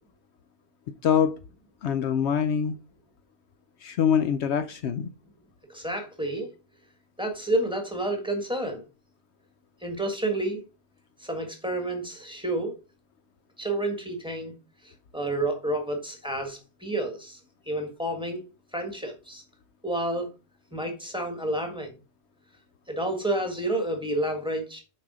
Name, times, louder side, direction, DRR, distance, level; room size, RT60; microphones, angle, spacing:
voice 1, 1.0-1.4 1.8-2.8 3.8-5.1, left 8 dB, 70° left, 0.8 m, -24 dB
voice 2, 5.7-6.5 7.2-8.8 9.8-10.6 11.2-12.7 13.6-14.5 15.1-17.4 17.7-18.4 18.7-19.4 19.8-20.3 20.7-21.9 22.9-24.8, right 1 dB, 5° right, 1.5 m, -29 dB
7.1 x 4.7 x 4.9 m
omnidirectional pair, 1.3 m